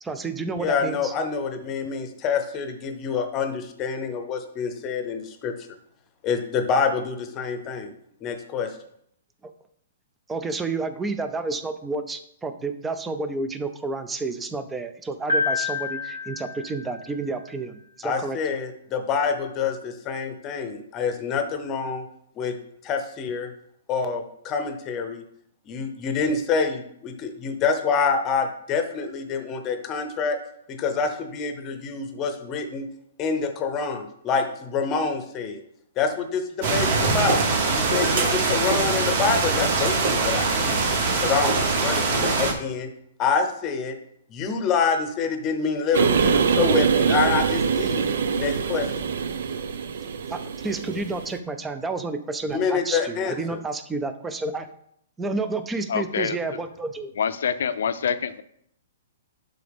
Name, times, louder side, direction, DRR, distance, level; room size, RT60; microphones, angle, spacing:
voice 1, 0.0-1.1 10.3-18.4 50.3-54.7 55.2-57.1, right 3 dB, 10° right, 9 dB, 0.5 m, -30 dB
voice 2, 0.6-5.5 6.2-7.9 8.2-8.7 18.0-22.0 22.4-22.5 22.8-23.5 23.9-25.2 25.7-30.4 30.7-32.9 33.2-35.6 36.0-37.4 37.7-40.8 41.2-42.9 43.2-44.0 44.3-48.1 48.4-48.9 52.5-53.6, left 5 dB, 20° left, 7 dB, 0.8 m, -26 dB
Piano, 15.3-17.4, left 3 dB, 85° right, 3.0 m, -28 dB
sound 1, 36.6-42.5, right 4 dB, 45° right, 1.1 m, -22 dB
sound 2, 45.9-51.4, right 6 dB, 65° right, 0.6 m, -23 dB
voice 3, 55.9-56.4 57.2-58.4, left 7 dB, 70° left, 13 dB, 0.5 m, -26 dB
11.5 x 3.9 x 3.5 m, 0.70 s
hypercardioid pair, 160°, 0 cm